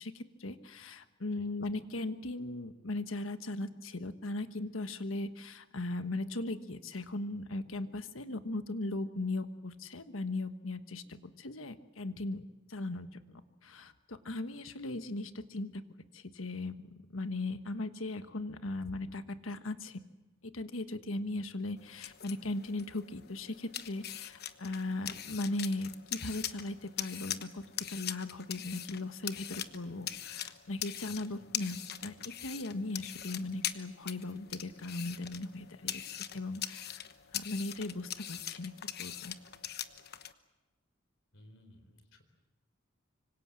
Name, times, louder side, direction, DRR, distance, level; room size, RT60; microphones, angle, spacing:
voice 1, 0.0-12.4 12.7-15.8 16.1-16.7 17.1-20.0 20.4-27.6 27.9-37.0 37.3-38.7 39.0-39.3, left 2 dB, 90° left, 10 dB, 1.4 m, -38 dB
sound 1, 21.8-40.3, left 11 dB, 55° left, 1.1 m, -42 dB
voice 2, 31.1-31.5 41.3-42.2, left 1 dB, 70° left, 8 dB, 4.2 m, -58 dB
25.5 x 25.0 x 7.6 m, 1.1 s
head